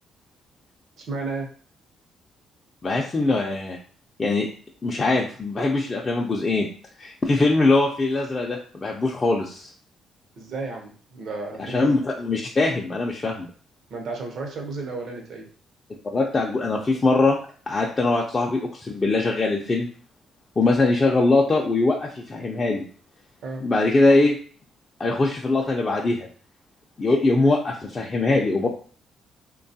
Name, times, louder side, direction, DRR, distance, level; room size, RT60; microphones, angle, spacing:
voice 1, 1.0-1.5 10.4-12.0 13.9-15.5 23.4-23.6, right 3 dB, 70° right, 1 dB, 0.7 m, -33 dB
voice 2, 2.8-3.8 4.2-4.5 4.8-6.7 7.0-9.7 11.6-13.5 16.1-17.4 17.7-19.9 20.6-22.8 23.6-24.4 25.0-26.3 27.0-28.7, left 2 dB, 30° left, -2 dB, 0.4 m, -22 dB
3.1 x 2.2 x 2.7 m, 0.43 s
cardioid pair, 90°, 0 cm